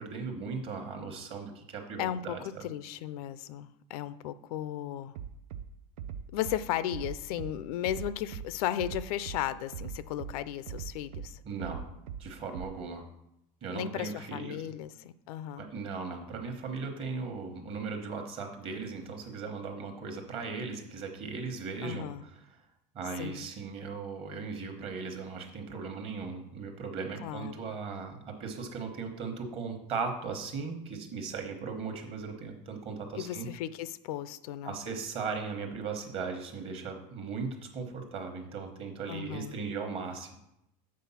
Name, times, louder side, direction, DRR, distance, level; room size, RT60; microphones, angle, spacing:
voice 1, 0.0-2.7 11.4-11.8 12.2-13.0 13.6-14.6 15.6-22.3 22.9-33.5 34.6-40.3, right 5 dB, 30° right, 4 dB, 1.1 m, -38 dB
voice 2, 2.0-5.1 6.3-11.4 13.7-15.7 21.8-22.2 23.2-23.5 27.2-27.6 33.1-34.8 39.1-39.6, left 12 dB, 85° left, 15 dB, 0.5 m, -35 dB
Bass drum, 5.1-5.6 6.0-6.6 6.9-7.5 7.8-8.5 8.8-9.4 9.7-10.3 10.7-11.3 11.6-12.2 12.5-12.6, right 8 dB, 70° right, 0.5 m, -39 dB
7.5 x 4.3 x 5.6 m, 0.83 s
cardioid pair, 170°, 19 cm